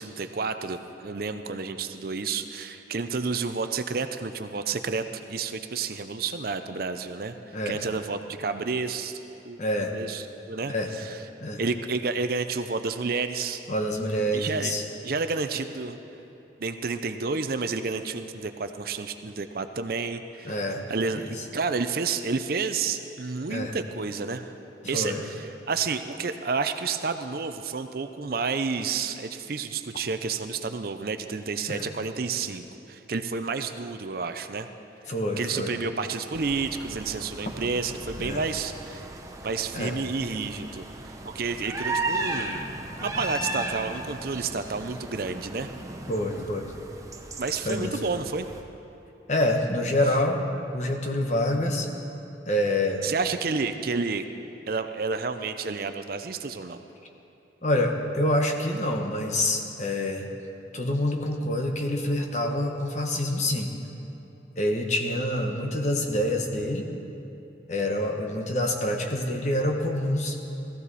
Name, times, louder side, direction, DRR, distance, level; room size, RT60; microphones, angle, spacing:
voice 1, 0.0-7.4 7.7-9.6 9.9-11.2 11.6-13.6 14.3-14.7 15.0-16.0 16.6-20.6 20.9-24.5 24.9-34.7 35.4-39.1 39.4-42.7 43.0-45.7 47.4-48.5 53.0-54.2 54.7-56.8, right 4 dB, 50° right, 9 dB, 0.6 m, -30 dB
voice 2, 9.6-9.9 10.7-10.9 11.4-11.6 13.7-14.8 20.4-20.8 21.2-21.3 23.5-23.7 24.9-25.2 31.7-31.9 35.1-35.7 38.2-38.4 39.7-39.9 46.1-46.7 47.6-47.9 49.3-50.5 50.7-51.9 52.5-53.0 57.6-60.3 60.7-63.7 64.6-66.9 67.7-70.4, left 1 dB, 40° left, 3 dB, 1.2 m, -26 dB
sound 1, 36.3-48.6, right 2 dB, 15° right, 0.8 m, -36 dB
17.0 x 15.0 x 4.2 m, 2.9 s
head